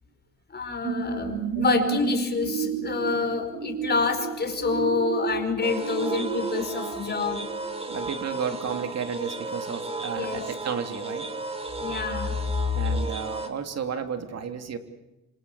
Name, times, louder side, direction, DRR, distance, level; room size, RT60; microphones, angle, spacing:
voice 1, 0.5-7.5 10.1-10.4 11.8-12.4, left 4 dB, 35° left, 7 dB, 5.0 m, -27 dB
sound 1, 0.8-8.2 8.7-8.8, right 6 dB, 90° right, 5.0 m, -32 dB
sound 2, 5.6-13.5, right 3 dB, 20° right, 2.8 m, -34 dB
voice 2, 7.9-11.3 12.4-14.8, right 7 dB, 55° right, 7 dB, 2.9 m, -33 dB
27.0 x 26.0 x 7.1 m, 0.99 s
cardioid pair, 90°, 30 cm